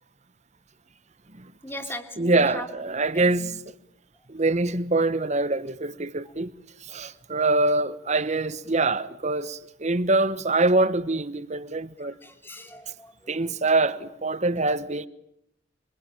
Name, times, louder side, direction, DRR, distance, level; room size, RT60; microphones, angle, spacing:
voice 1, 1.6-3.5 12.2-13.1, left 1 dB, 10° left, 2.7 m, -39 dB
voice 2, 2.2-3.5 4.3-6.5 6.9-12.1 13.3-15.1, right 2 dB, 35° right, 1.2 m, -24 dB
26.5 x 24.5 x 8.8 m
head